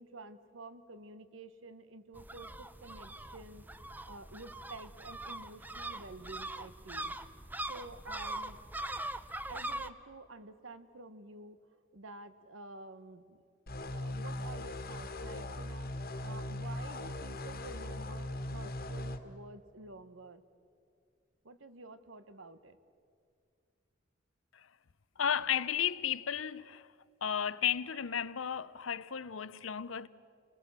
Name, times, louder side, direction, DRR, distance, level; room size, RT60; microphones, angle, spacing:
voice 1, 0.0-3.6 4.1-7.1 7.7-8.6 9.5-11.7 11.9-13.4 13.9-20.4 21.4-22.8, right 2 dB, 80° right, 1.3 m, -50 dB
sound 1, 2.1-9.9, right 1 dB, 10° right, 0.6 m, -42 dB
sound 2, 13.7-19.2, left 1 dB, 50° left, 1.6 m, -39 dB
voice 2, 25.2-26.9 27.2-30.1, left 8 dB, 85° left, 0.7 m, -33 dB
29.0 x 20.0 x 7.3 m
head